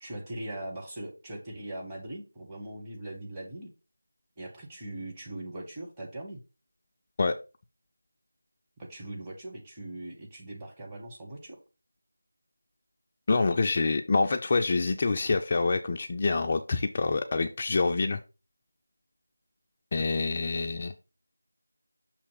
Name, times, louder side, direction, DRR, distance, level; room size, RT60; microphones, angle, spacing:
voice 1, 0.0-3.7 4.4-6.4 8.8-11.6, right 1 dB, 10° right, -3 dB, 1.0 m, -40 dB
voice 2, 13.3-18.2 19.9-21.0, left 3 dB, 25° left, 4 dB, 0.3 m, -26 dB
6.6 x 2.9 x 4.9 m, 0.31 s
figure-of-eight pair, 170°, 0 cm